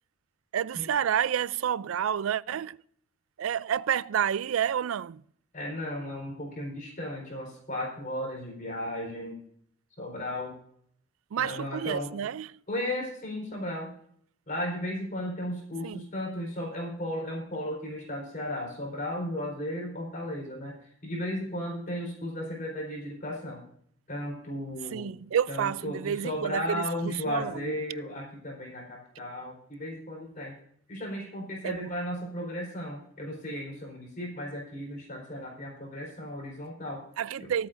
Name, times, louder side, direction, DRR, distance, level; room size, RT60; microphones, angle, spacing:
voice 1, 0.5-2.8 3.4-5.2 11.3-12.6 15.8-16.0 24.9-27.7 31.6-31.9 37.2-37.7, right 8 dB, 80° right, 0.4 m, -29 dB
voice 2, 5.5-9.4 10.0-10.5 11.4-12.1 12.7-13.9 14.5-20.7 21.0-23.6 24.1-25.1 25.5-30.5 30.9-37.0 37.4-37.5, left 1 dB, 40° left, 4.4 m, -35 dB
24.0 x 8.6 x 2.6 m
head